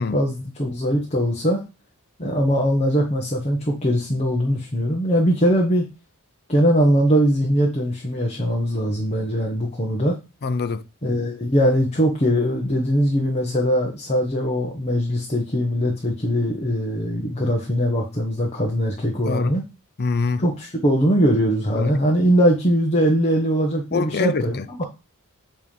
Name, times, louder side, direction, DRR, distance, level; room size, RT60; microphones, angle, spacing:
voice 1, 0.0-1.6 2.2-5.9 6.5-10.1 11.0-19.6 20.4-24.8, equal, 30° left, 1.3 m, -21 dB
voice 2, 10.4-10.8 19.2-19.6 20.0-20.4 21.7-21.9 23.9-24.8, left 4 dB, 45° left, 0.5 m, -25 dB
8.3 x 3.5 x 5.3 m
head